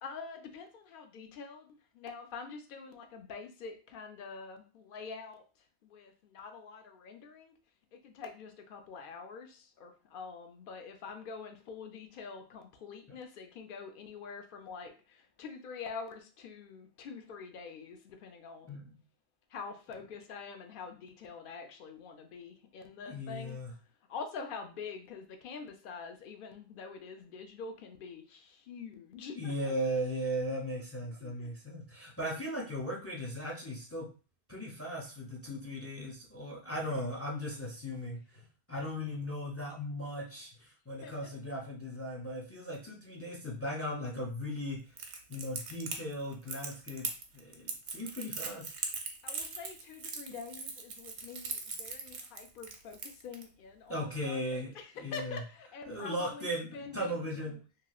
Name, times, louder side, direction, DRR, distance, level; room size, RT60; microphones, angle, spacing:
voice 1, 0.0-5.4 5.8-7.5 7.9-18.8 19.5-23.6 24.1-29.7 31.2-31.5 36.9-37.0 41.0-41.3 49.2-57.6, left 5 dB, 60° left, 6 dB, 0.7 m, -46 dB
voice 2, 23.1-23.7 29.3-34.1 34.5-45.0 45.3-47.1 47.3-48.8 53.9-54.7 55.0-55.4 55.9-57.6, equal, 25° left, -2 dB, 0.3 m, -37 dB
Crackle, 45.0-53.4, right 5 dB, 85° right, 0.9 m, -40 dB
3.0 x 2.8 x 2.3 m, 0.36 s
omnidirectional pair, 1.1 m